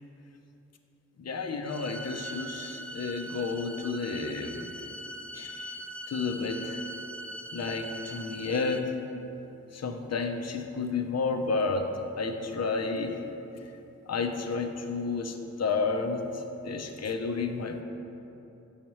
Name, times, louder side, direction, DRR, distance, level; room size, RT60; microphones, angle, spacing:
voice 1, 1.2-4.7 5.3-5.7 6.1-6.8 7.5-8.9 9.7-11.9 12.2-13.2 14.1-17.8, left 4 dB, 55° left, 5 dB, 0.6 m, -31 dB
sound 1, 1.6-8.8, right 1 dB, 5° left, 0.4 m, -41 dB
7.1 x 6.5 x 3.1 m, 3.0 s
cardioid pair, 65°, 30 cm